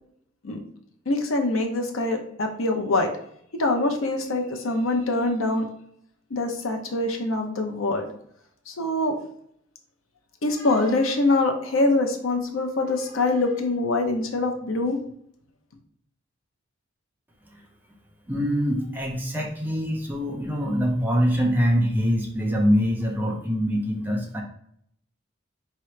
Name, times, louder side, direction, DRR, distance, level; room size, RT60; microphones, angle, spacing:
voice 1, 1.1-3.1 3.6-5.7 6.3-8.1 8.7-9.1 10.4-15.0, left 2 dB, 70° left, 4 dB, 0.8 m, -24 dB
voice 2, 18.3-24.4, equal, 10° right, 0 dB, 0.7 m, -24 dB
4.8 x 3.0 x 3.2 m, 0.69 s
head